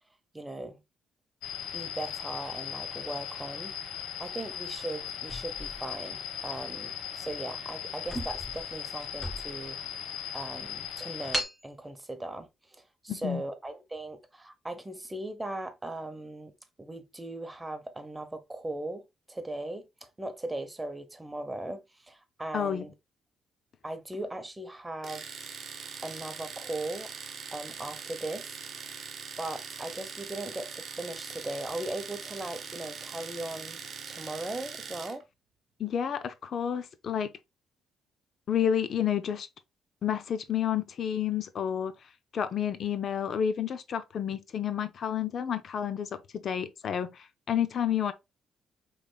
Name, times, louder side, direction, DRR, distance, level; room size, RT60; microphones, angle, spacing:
voice 1, 0.3-0.8 1.7-9.8 10.3-16.5 16.8-22.9 23.8-25.2 26.0-27.1 27.5-28.5 29.4-35.2, right 2 dB, 15° right, 0.9 m, -38 dB
sound 1, 1.4-11.4, left 9 dB, 90° left, 1.1 m, -38 dB
sound 2, 5.3-6.5 7.2-7.4 7.7-7.8 8.0-9.8 10.3-10.4 11.3-11.6, equal, 10° left, 2.3 m, -37 dB
voice 2, 13.1-13.4 22.5-22.8 35.8-37.3 38.5-39.5 40.0-41.9 42.3-48.1, left 9 dB, 60° left, 0.4 m, -30 dB
Domestic sounds home sounds, 25.0-35.2, right 6 dB, 55° right, 0.8 m, -42 dB
5.1 x 3.2 x 2.3 m
cardioid pair, 90°, 0 cm